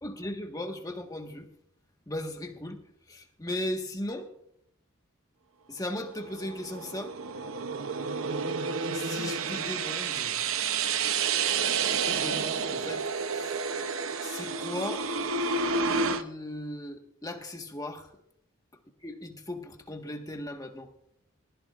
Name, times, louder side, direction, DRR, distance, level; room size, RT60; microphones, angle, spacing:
voice 1, 0.0-1.5 2.1-2.8 3.1-4.3 5.7-7.1 8.9-10.4 11.8-13.0 13.3-13.6 14.2-15.1 16.1-18.1 19.0-20.9, left 1 dB, 15° left, 3 dB, 1.5 m, -37 dB
sound 1, 6.1-16.2, right 5 dB, 75° right, 0.8 m, -30 dB
20.5 x 16.5 x 2.5 m, 0.70 s
head